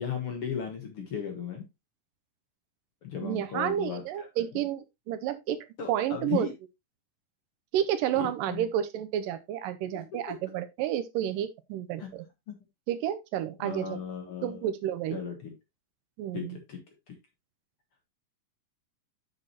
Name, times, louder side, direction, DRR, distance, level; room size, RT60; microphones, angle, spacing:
voice 1, 0.0-1.7 3.0-4.3 4.5-4.6 5.8-6.5 8.1-8.7 9.9-10.0 12.0-12.1 12.5-12.6 13.6-14.7 15.1-15.5 16.3-16.8 17.1-17.2, left 7 dB, 55° left, 1.9 m, -36 dB
voice 2, 3.2-5.6 5.9-6.5 7.7-12.3 12.9-14.0 14.4-15.2 16.2-16.6, right 11 dB, 85° right, 2.4 m, -30 dB
8.6 x 6.3 x 2.9 m
omnidirectional pair, 4.0 m